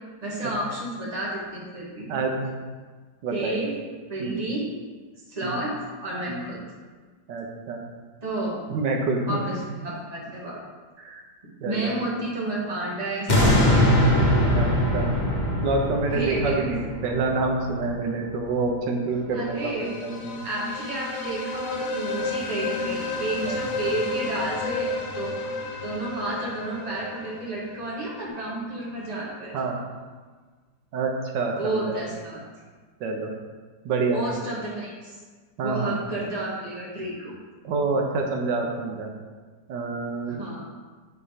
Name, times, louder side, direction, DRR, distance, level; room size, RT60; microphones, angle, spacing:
voice 1, 0.2-2.1 3.3-3.7 4.1-4.7 5.3-5.7 6.0-6.6 8.2-8.6 9.3-10.6 11.6-14.2 16.1-16.6 19.3-19.9 20.4-29.5 31.5-32.4 34.1-35.2 35.6-37.3 40.3-40.6, right 1 dB, 25° right, -5 dB, 1.9 m, -31 dB
voice 2, 2.1-2.6 3.2-3.7 4.2-4.4 5.4-5.6 6.3-6.4 7.3-7.8 8.7-9.4 11.0-11.2 11.6-11.9 14.5-15.1 15.6-20.4 23.4-23.6 29.5-29.8 30.9-32.0 33.0-33.3 33.8-34.3 35.6-36.0 37.6-39.1 39.7-40.3, right 3 dB, 90° right, 1 dB, 1.6 m, -27 dB
sound 1, 13.3-18.4 18.9-19.0, equal, 30° left, 1.1 m, -22 dB
sound 2, 19.4-28.2, left 2 dB, 70° left, 1.4 m, -32 dB
9.1 x 4.2 x 5.1 m, 1.4 s
omnidirectional pair, 1.9 m